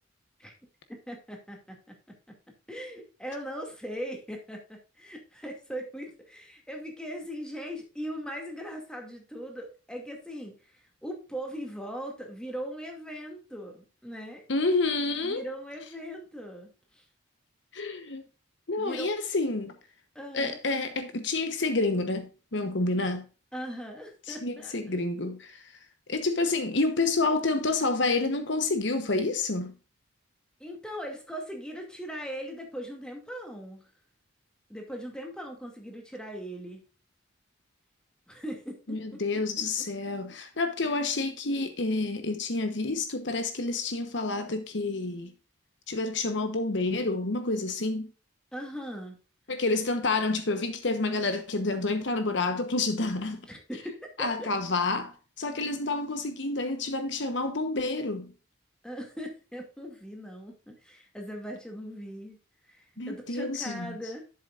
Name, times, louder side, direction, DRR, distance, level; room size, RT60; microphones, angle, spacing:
voice 1, 0.9-1.8 2.7-14.4 15.2-17.0 18.8-19.1 20.1-20.6 23.5-24.7 30.6-33.9 34.7-36.8 38.3-39.2 48.5-49.2 53.5-54.5 58.8-62.4 62.7-64.2, equal, 5° left, 2.3 m, -39 dB
voice 2, 14.5-15.4 17.7-18.2 18.7-19.7 20.3-23.2 24.3-25.6 26.1-29.7 38.9-45.3 45.9-48.1 49.5-53.4 54.2-58.3 63.0-64.0, left 3 dB, 60° left, 1.0 m, -29 dB
11.0 x 7.6 x 2.5 m
head